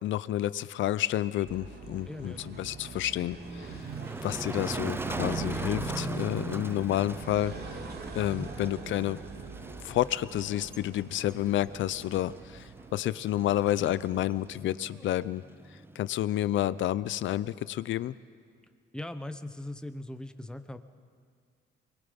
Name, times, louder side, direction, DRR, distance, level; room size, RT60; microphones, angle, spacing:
voice 1, 0.0-3.8 4.2-7.5 8.1-9.2 9.8-12.6 12.9-15.4 16.0-18.2, left 13 dB, 75° left, 17 dB, 0.6 m, -30 dB
sound 1, 1.5-14.6, right 4 dB, 55° right, 2.2 m, -41 dB
voice 2, 2.1-2.5 8.3-8.5 18.9-20.8, left 1 dB, 5° left, 9 dB, 1.1 m, -40 dB
Motor vehicle (road), 3.4-16.1, right 2 dB, 10° right, 0.6 m, -41 dB
24.0 x 21.5 x 5.3 m, 2.2 s
cardioid pair, 90°, 20 cm